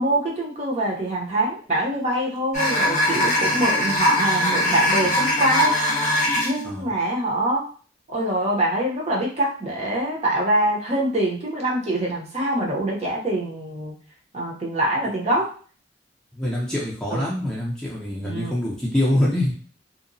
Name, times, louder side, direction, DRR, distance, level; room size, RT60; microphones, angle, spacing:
voice 1, 0.0-5.7 6.4-7.6 8.1-13.9 14.3-15.5 17.1-17.3 18.2-18.6, right 1 dB, 35° right, -3 dB, 0.6 m, -24 dB
sound 1, 2.5-6.6, left 1 dB, 40° left, 0.7 m, -21 dB
voice 2, 16.4-19.5, left 1 dB, 5° left, -5 dB, 0.5 m, -24 dB
2.8 x 2.0 x 2.6 m, 0.41 s
head